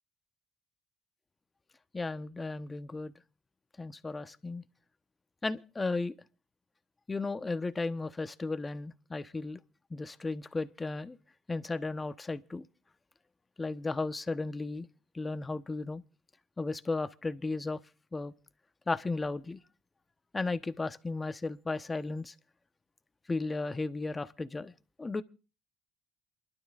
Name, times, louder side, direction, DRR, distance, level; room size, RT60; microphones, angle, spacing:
voice 1, 1.9-3.1 3.8-4.6 5.4-6.1 7.1-9.6 9.9-11.2 11.5-12.7 13.6-14.9 15.1-16.0 16.6-17.8 18.1-18.3 18.9-19.6 20.3-22.3 23.3-24.7 25.0-25.2, left 3 dB, 25° left, 1.0 m, -34 dB
28.0 x 12.0 x 2.5 m
supercardioid pair, 70°, 0 cm